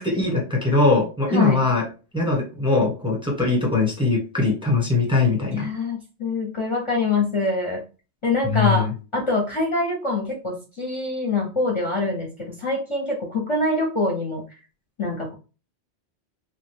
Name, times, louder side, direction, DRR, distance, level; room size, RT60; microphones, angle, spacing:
voice 1, 0.0-1.8 2.1-5.7 8.4-8.9, left 3 dB, 5° right, -2 dB, 0.9 m, -21 dB
voice 2, 5.5-7.8 8.2-8.9 9.1-14.4 15.0-15.3, left 3 dB, 35° left, 0 dB, 0.5 m, -24 dB
3.0 x 2.1 x 3.3 m, 0.33 s
omnidirectional pair, 1.1 m